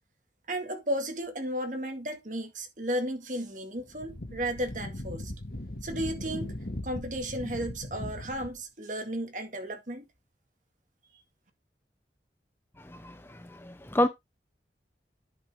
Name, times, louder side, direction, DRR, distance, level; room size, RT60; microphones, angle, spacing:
voice 1, 0.5-5.3 5.8-6.6 6.8-10.0, right 1 dB, 45° right, 2.0 m, -34 dB
Wind, 3.8-8.6, left 1 dB, 55° left, 1.7 m, -39 dB
voice 2, 12.8-14.1, left 1 dB, 15° left, 0.6 m, -29 dB
10.5 x 5.4 x 3.6 m
head